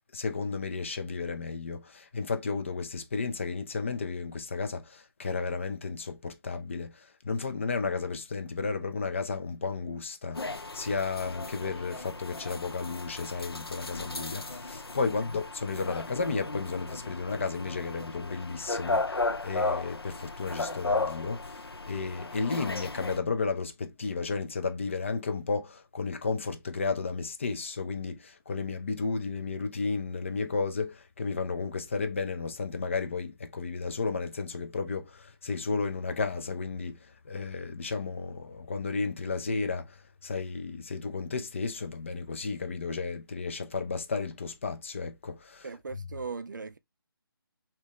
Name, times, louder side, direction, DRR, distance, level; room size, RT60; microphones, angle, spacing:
voice 1, 0.1-45.7, left 4 dB, 30° left, 0.4 m, -33 dB
sound 1, 10.3-23.2, left 3 dB, 85° left, 0.5 m, -35 dB
voice 2, 45.6-46.8, right 4 dB, 50° right, 0.4 m, -39 dB
2.9 x 2.8 x 3.4 m
figure-of-eight pair, 150°, 13 cm